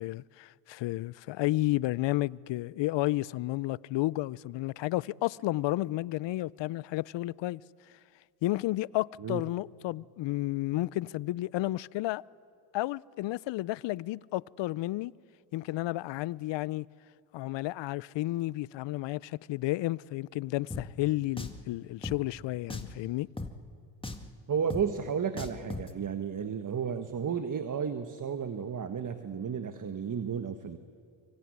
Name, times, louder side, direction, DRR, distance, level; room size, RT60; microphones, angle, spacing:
voice 1, 0.0-7.6 8.4-12.2 12.7-15.1 15.5-16.9 17.3-23.3, left 17 dB, 60° left, 0.6 m, -32 dB
Drum, 20.7-20.8 21.4-21.6 22.0-22.2 22.7-23.0 23.4-23.5 24.0-24.3 24.7-24.8 25.4-25.9, left 2 dB, 10° left, 1.9 m, -38 dB
voice 2, 24.5-30.8, right 7 dB, 40° right, 1.5 m, -33 dB
24.5 x 24.5 x 9.6 m
supercardioid pair, 75°, 49 cm